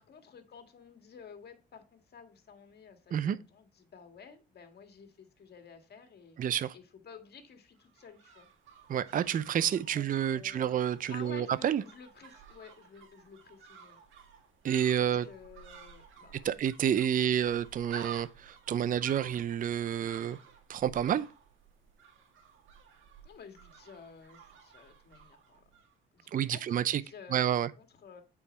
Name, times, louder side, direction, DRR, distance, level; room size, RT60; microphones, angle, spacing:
voice 1, 0.0-6.4 6.7-8.5 10.0-14.0 15.0-16.5 23.2-25.6 26.1-28.2, left 6 dB, 55° left, 1.8 m, -52 dB
voice 2, 6.4-6.7 8.9-11.8 14.6-15.2 16.4-20.4 20.7-21.2 26.3-27.0 27.3-27.7, right 9 dB, 45° right, 0.5 m, -29 dB
sound 1, 7.8-25.9 26.2-26.3, right 7 dB, 80° right, 1.8 m, -52 dB
8.4 x 4.7 x 4.3 m
cardioid pair, 90°, 20 cm